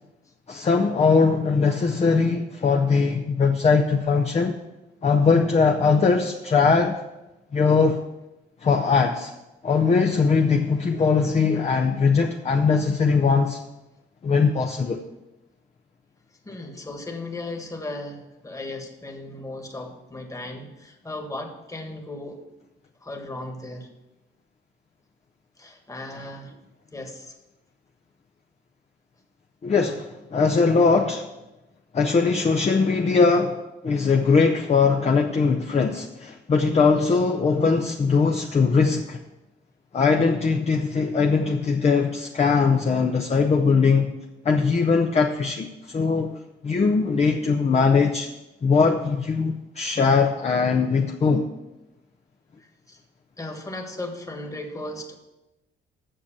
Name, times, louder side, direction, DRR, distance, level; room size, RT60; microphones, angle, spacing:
voice 1, 0.5-4.6 5.0-7.0 7.5-8.0 8.6-9.3 9.6-13.6 14.2-15.0 29.6-31.3 31.9-39.2 39.9-44.1 44.4-48.3 48.6-51.5, left 4 dB, 35° left, 3 dB, 0.7 m, -21 dB
voice 2, 16.4-22.4 23.0-23.9 25.6-26.5 26.9-27.3 52.6-53.0 53.4-55.2, left 2 dB, 15° left, 4 dB, 1.6 m, -36 dB
7.8 x 6.5 x 7.1 m, 1.0 s
cardioid pair, 90°, 20 cm